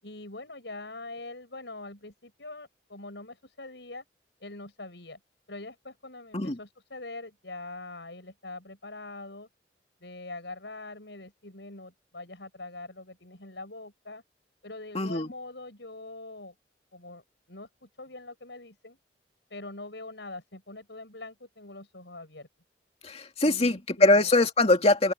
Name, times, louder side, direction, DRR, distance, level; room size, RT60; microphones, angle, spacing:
voice 1, 0.0-4.0 4.4-5.2 5.5-9.5 10.0-14.2 14.6-16.5 16.9-17.2 17.5-19.0 19.5-22.5 23.4-24.5, left 2 dB, 80° left, 7.6 m, -43 dB
voice 2, 14.9-15.3 23.0-25.1, left 2 dB, 35° left, 2.4 m, -22 dB
open air
head